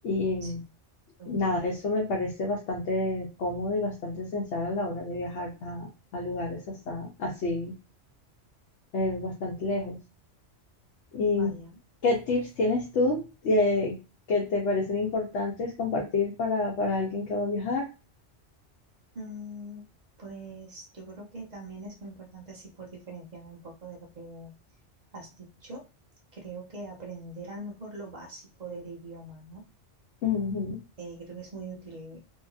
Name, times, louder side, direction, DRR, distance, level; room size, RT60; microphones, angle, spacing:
voice 1, 0.0-0.6 1.3-5.9 6.1-7.7 8.9-10.0 11.1-11.5 12.0-14.0 14.3-17.9 30.2-30.8, left 3 dB, 75° left, -1 dB, 1.0 m, -28 dB
voice 2, 1.2-1.7 11.3-11.8 19.1-19.9 20.2-24.5 25.1-25.9 26.3-29.7 31.0-32.2, right 2 dB, 40° right, -1 dB, 0.9 m, -42 dB
2.9 x 2.8 x 2.3 m, 0.30 s
omnidirectional pair, 1.2 m